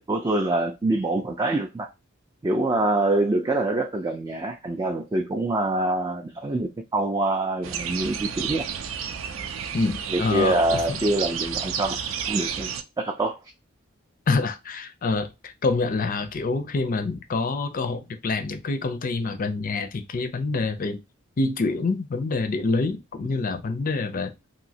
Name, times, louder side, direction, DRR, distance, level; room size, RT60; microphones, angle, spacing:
voice 1, 0.0-1.9 2.4-8.7 10.1-12.0 12.3-12.7 13.0-13.4, right 2 dB, 20° right, 0.3 m, -25 dB
sound 1, 7.6-12.8, right 7 dB, 80° right, 0.5 m, -31 dB
voice 2, 9.7-11.0 14.3-21.0 21.4-24.3, left 3 dB, 45° left, 0.5 m, -26 dB
3.0 x 2.7 x 2.7 m
head